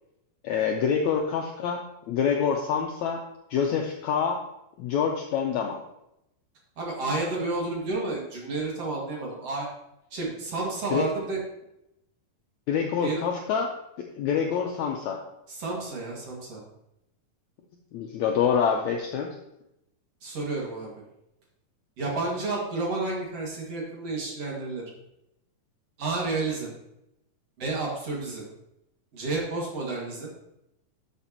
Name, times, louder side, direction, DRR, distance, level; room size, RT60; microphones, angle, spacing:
voice 1, 0.4-3.2 3.5-4.4 4.8-5.8 10.9-11.1 12.7-15.2 17.9-19.3, left 7 dB, 80° left, 2 dB, 1.7 m, -26 dB
voice 2, 6.8-9.7 10.1-11.4 13.0-13.2 15.5-16.6 20.2-20.9 22.0-24.8 26.0-26.7 27.6-28.5 29.1-30.3, right 3 dB, 50° right, -3 dB, 2.7 m, -31 dB
12.5 x 6.8 x 2.9 m, 0.85 s
omnidirectional pair, 4.0 m